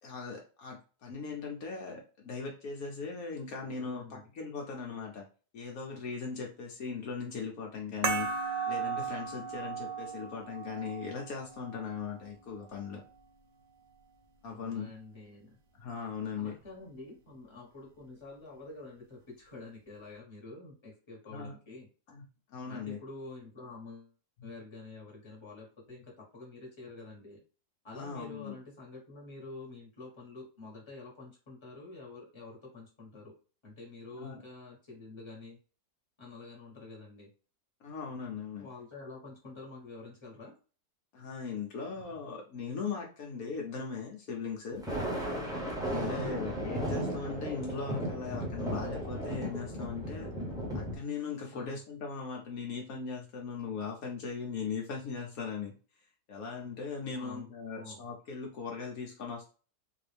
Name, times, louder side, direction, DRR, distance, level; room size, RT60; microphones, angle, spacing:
voice 1, 0.0-5.2 5.5-8.3 8.7-13.0 14.4-14.9 15.8-16.5 21.3-21.5 22.1-22.2 22.5-23.0 24.4-24.5 27.9-28.6 34.2-34.4 37.8-38.7 41.1-44.8 45.9-50.3 50.7-55.7 56.3-59.5, left 5 dB, 70° left, 0 dB, 1.2 m, -39 dB
voice 2, 3.8-4.3 14.4-15.6 16.3-21.9 22.7-24.1 24.4-27.4 27.8-33.3 33.6-35.6 36.2-37.3 38.6-40.6 46.1-46.6 51.5-51.8 57.1-58.0, left 3 dB, 20° left, -2 dB, 1.3 m, -48 dB
sound 1, 8.0-13.1, right 6 dB, 65° right, 0.9 m, -37 dB
Thunder, 44.7-51.0, equal, 5° right, 0.5 m, -35 dB
3.7 x 2.5 x 3.3 m, 0.36 s
omnidirectional pair, 1.7 m